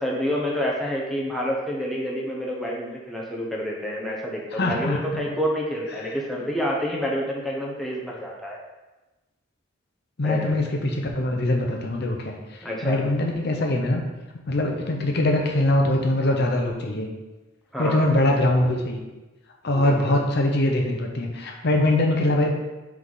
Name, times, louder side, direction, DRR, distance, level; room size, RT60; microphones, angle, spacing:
voice 1, 0.0-8.6 10.2-10.6 12.6-13.0 17.7-18.1 19.7-20.2, equal, ahead, -4 dB, 0.9 m, -28 dB
voice 2, 4.5-5.2 10.2-14.0 14.5-17.1 17.8-19.0 19.6-22.5, left 1 dB, 55° left, 2 dB, 0.7 m, -23 dB
5.6 x 4.7 x 4.0 m, 1.1 s
head